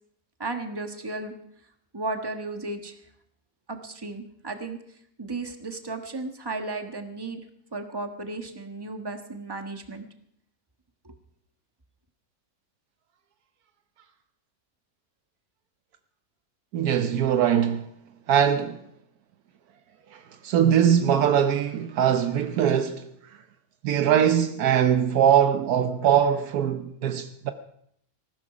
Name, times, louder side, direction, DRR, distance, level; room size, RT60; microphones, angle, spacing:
voice 1, 0.4-1.4 1.9-3.0 3.7-4.8 5.2-7.4 7.7-10.0 11.0-11.1, right 3 dB, 15° right, 1.3 m, -34 dB
voice 2, 16.7-17.9 18.3-18.8 20.1-23.1 23.8-27.5, right 9 dB, 80° right, 1.3 m, -22 dB
19.5 x 15.0 x 5.0 m
omnidirectional pair, 1.6 m